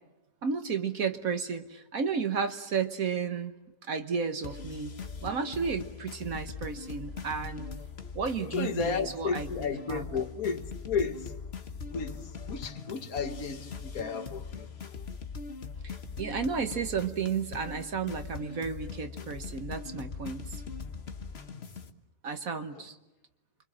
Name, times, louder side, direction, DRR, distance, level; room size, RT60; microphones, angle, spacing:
voice 1, 0.4-3.5 3.8-7.7 8.1-10.0 15.8-20.6 22.2-23.0, right 6 dB, 60° right, 1.5 m, -33 dB
sound 1, 4.4-21.9, left 5 dB, 40° left, 1.5 m, -41 dB
voice 2, 8.4-11.4 11.9-14.8, left 5 dB, 65° left, 1.9 m, -33 dB
29.0 x 24.0 x 7.5 m
omnidirectional pair, 1.7 m